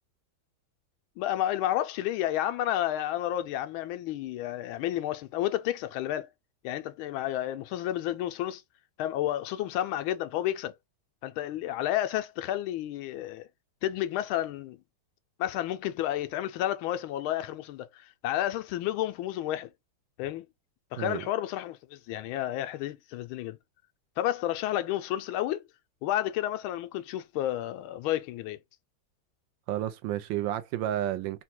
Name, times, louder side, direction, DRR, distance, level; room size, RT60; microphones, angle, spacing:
voice 1, 1.2-6.3 6.6-8.6 9.0-10.7 11.2-13.5 13.8-14.8 15.4-19.7 20.2-20.4 20.9-23.6 24.2-25.6 26.0-28.6, left 13 dB, 85° left, 1.4 m, -31 dB
voice 2, 29.7-31.4, right 12 dB, 75° right, 1.2 m, -31 dB
4.0 x 2.2 x 4.4 m
omnidirectional pair, 2.2 m